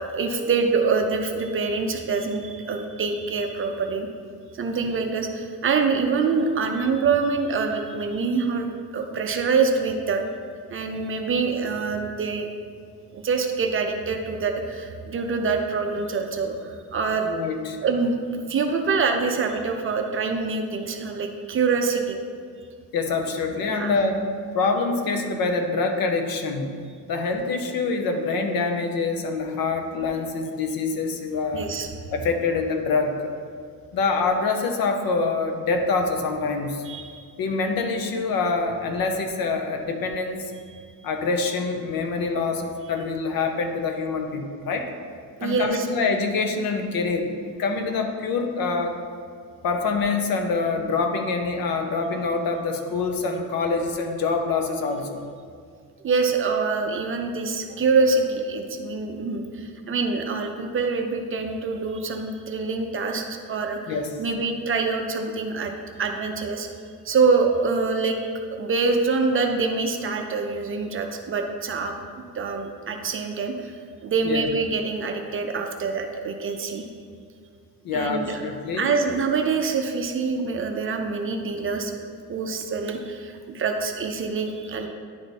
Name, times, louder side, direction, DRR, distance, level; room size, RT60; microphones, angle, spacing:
voice 1, 0.0-4.1 4.5-8.7 8.9-10.2 10.7-12.5 13.1-17.3 17.8-22.2 23.7-23.9 31.5-31.9 36.8-37.2 45.4-45.9 56.0-63.8 64.2-66.7 67.0-71.9 72.3-76.9 77.9-78.4 78.8-81.9 82.3-84.9, right 4 dB, 35° right, 4 dB, 0.5 m, -25 dB
voice 2, 17.2-17.8 22.9-24.2 24.5-31.7 32.1-33.3 33.9-36.8 37.4-40.5 41.0-44.9 45.4-47.3 47.6-49.0 49.6-55.2 63.9-64.1 74.2-74.5 77.8-78.9, left 4 dB, 70° left, 5 dB, 0.8 m, -25 dB
10.0 x 3.4 x 4.1 m, 2.1 s
cardioid pair, 160°, 37 cm